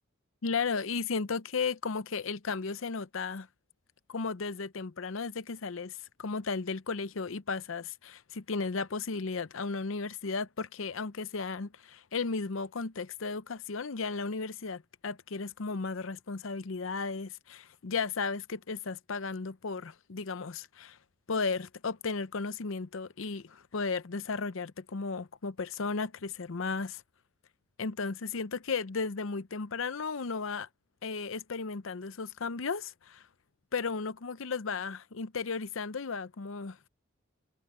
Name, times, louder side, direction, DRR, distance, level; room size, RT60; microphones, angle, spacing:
voice 1, 0.4-3.5 4.1-21.0 21.3-27.0 27.8-30.7 31.0-33.2 33.7-36.8, left 4 dB, 65° left, 0.7 m, -35 dB
head